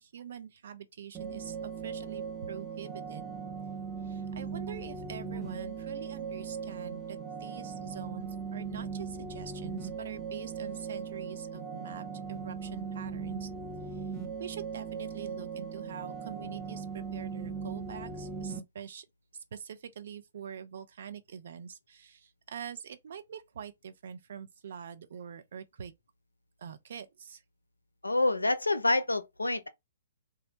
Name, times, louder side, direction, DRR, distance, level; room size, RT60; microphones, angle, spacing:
voice 1, 0.0-3.3 4.0-13.5 13.9-14.0 14.4-19.1 19.3-25.9 26.6-27.4, right 7 dB, 55° right, 0.5 m, -44 dB
sound 1, 1.1-18.6, right 6 dB, 10° right, 0.7 m, -39 dB
voice 2, 28.0-29.7, left 2 dB, 80° left, 0.4 m, -27 dB
2.7 x 2.1 x 3.8 m
figure-of-eight pair, 120°, 0 cm